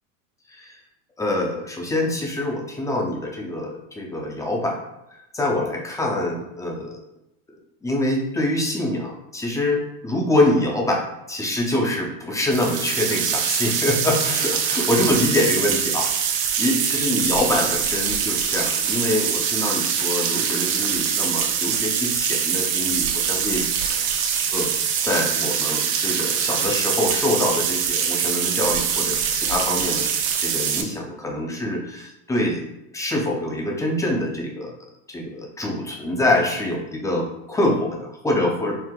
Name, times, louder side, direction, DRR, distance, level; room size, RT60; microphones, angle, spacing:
voice 1, 1.2-4.8 5.3-7.0 7.8-24.1 24.5-24.7 25.0-30.1 30.4-32.6 32.9-34.7 35.1-38.8, left 1 dB, 10° left, 0 dB, 0.6 m, -25 dB
sound 1, 12.5-30.8, right 7 dB, 85° right, 0.8 m, -23 dB
4.6 x 2.0 x 3.7 m, 0.87 s
supercardioid pair, 135°, 39 cm